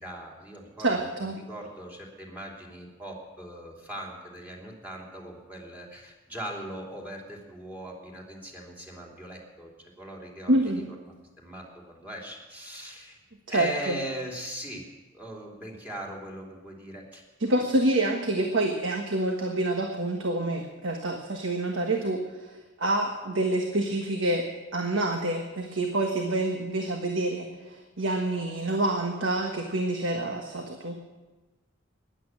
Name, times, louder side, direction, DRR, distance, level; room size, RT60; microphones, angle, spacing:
voice 1, 0.0-10.5 10.9-11.0 11.4-13.2 13.5-14.9 15.1-17.8, right 1 dB, 10° right, -1 dB, 3.1 m, -40 dB
voice 2, 0.8-1.3 10.5-10.9 13.5-14.0 17.4-22.5 22.8-24.5 24.7-31.0, right 1 dB, 90° right, 3 dB, 1.4 m, -27 dB
15.5 x 11.0 x 7.3 m, 1.2 s
head